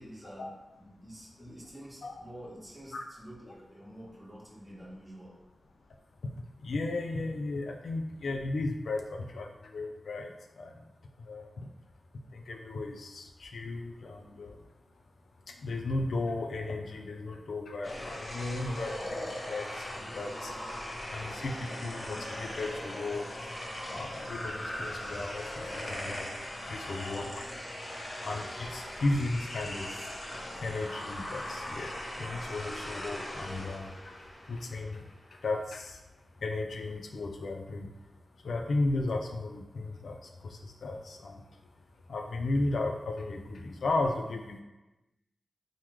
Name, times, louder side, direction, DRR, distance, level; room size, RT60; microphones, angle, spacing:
voice 1, 0.0-5.3, equal, 25° right, -5 dB, 1.0 m, -48 dB
voice 2, 6.6-10.8 11.2-11.7 12.3-14.6 15.5-20.5 21.1-23.6 23.9-26.4 26.6-27.5 28.2-30.1 30.6-35.0 35.3-36.0 36.4-37.9 38.4-41.4 42.1-44.6, left 2 dB, 80° left, 3 dB, 0.3 m, -35 dB
sound 1, 17.8-35.2, left 1 dB, 40° left, 0.7 m, -39 dB
3.0 x 2.0 x 3.5 m, 1.1 s
cardioid pair, 65°, 0 cm